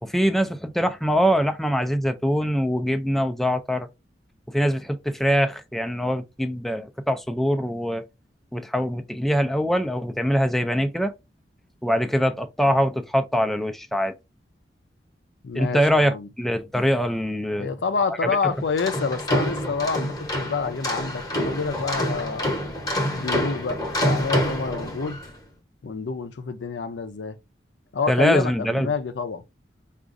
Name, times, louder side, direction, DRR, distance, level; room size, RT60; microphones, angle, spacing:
voice 1, 0.0-3.9 4.5-8.0 8.5-11.1 11.8-14.1 15.5-17.7 18.2-18.5 28.1-28.9, equal, ahead, 0.3 m, -23 dB
voice 2, 15.4-16.3 17.6-22.5 23.1-25.2 25.8-27.4 27.9-29.4, left 5 dB, 80° left, 0.5 m, -28 dB
sound 1, 18.6-25.3, equal, 20° left, 0.8 m, -27 dB
4.8 x 2.4 x 2.5 m
head